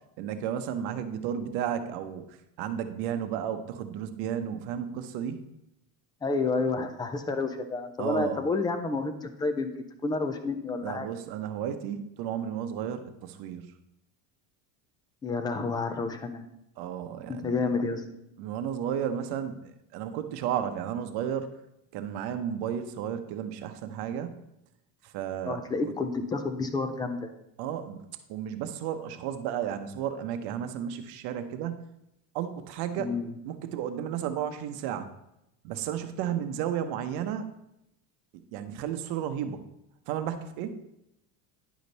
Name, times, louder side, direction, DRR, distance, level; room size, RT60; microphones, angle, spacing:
voice 1, 0.2-5.4 8.0-8.4 10.8-13.7 16.8-17.6 18.4-21.5 21.9-24.4 25.0-25.6 27.6-31.9 32.3-33.1 33.5-35.1 35.6-37.5 38.5-39.6 40.1-40.8, right 9 dB, 60° right, 9 dB, 0.9 m, -33 dB
voice 2, 6.2-9.7 10.0-11.1 15.2-16.4 17.3-18.1 25.5-27.3 33.0-33.3, left 3 dB, 10° left, 7 dB, 0.4 m, -30 dB
10.5 x 5.1 x 4.1 m, 0.83 s
cardioid pair, 155°, 43 cm